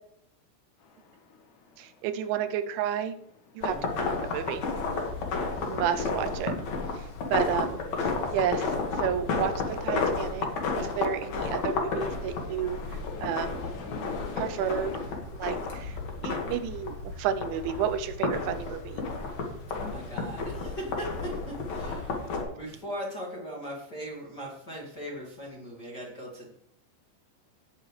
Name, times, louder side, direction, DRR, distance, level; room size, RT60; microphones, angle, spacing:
sound 1, 0.8-15.1, left 4 dB, 75° left, 4.1 m, -49 dB
voice 1, 1.8-3.2 3.6-3.8 4.3-4.7 5.7-6.5 7.3-7.8 8.3-10.5 10.7-12.8 13.2-13.7 14.4-14.9 15.3-16.0 16.2-19.0, right 9 dB, 85° right, 10 dB, 3.1 m, -31 dB
sound 2, 3.6-22.4, left 4 dB, 50° left, 2.4 m, -32 dB
voice 2, 19.8-22.2 22.6-26.5, equal, 35° left, -5 dB, 1.8 m, -39 dB
18.0 x 7.3 x 3.3 m, 0.70 s
omnidirectional pair, 5.2 m